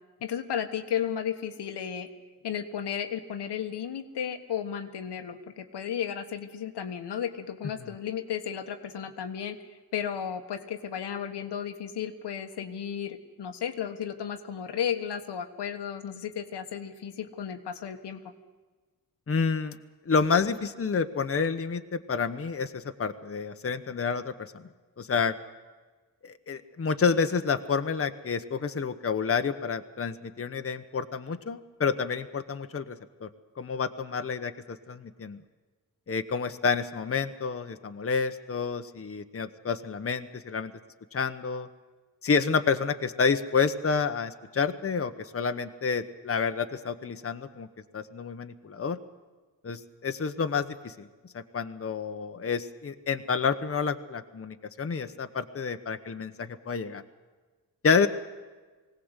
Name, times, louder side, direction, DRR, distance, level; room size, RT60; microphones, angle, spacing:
voice 1, 0.2-2.1 2.4-18.2, left 8 dB, 85° left, 6 dB, 1.5 m, -34 dB
voice 2, 19.3-19.8 20.1-24.6 25.0-25.3 26.2-33.3 33.6-35.4 36.1-40.7 41.1-41.7 42.2-47.7 47.9-49.0 49.6-51.1 51.3-57.0 57.8-58.1, left 5 dB, 35° left, 8 dB, 1.1 m, -29 dB
20.0 x 17.0 x 8.2 m, 1.3 s
cardioid pair, 80°, 40 cm